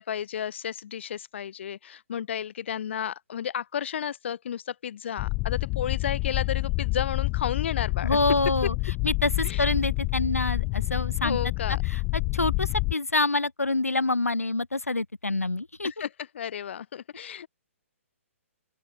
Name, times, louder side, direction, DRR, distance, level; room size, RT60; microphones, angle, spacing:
voice 1, 0.0-8.2 9.4-9.6 11.2-11.8 15.8-16.1 16.3-17.5, left 9 dB, 55° left, 4.2 m, -32 dB
sound 1, 5.2-12.9, left 26 dB, 25° left, 0.7 m, -28 dB
voice 2, 8.0-11.4 11.7-12.0 12.3-15.9, left 2 dB, 85° left, 2.5 m, -27 dB
open air
figure-of-eight pair, 130°, 8 cm